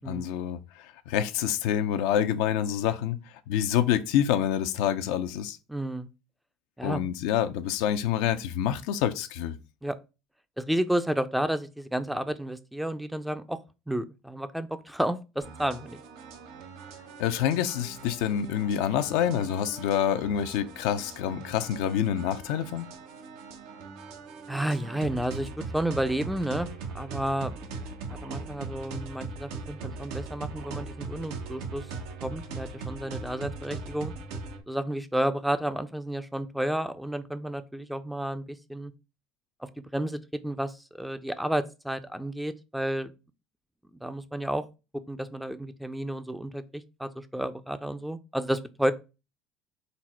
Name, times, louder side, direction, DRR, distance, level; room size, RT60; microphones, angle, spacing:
voice 1, 0.0-3.2 3.5-5.6 6.8-9.6 17.2-22.9, left 10 dB, 75° left, 0.4 m, -27 dB
voice 2, 5.7-6.1 6.8-7.0 9.8-10.0 10.6-13.6 13.9-16.0 24.5-27.7 28.1-31.9 32.2-34.1 34.7-38.9 39.6-43.1 44.0-44.6 45.1-48.9, right 1 dB, 5° right, 0.4 m, -31 dB
sound 1, 15.4-34.6, right 4 dB, 75° right, 0.7 m, -40 dB
4.0 x 2.1 x 4.3 m
supercardioid pair, 90°, 0 cm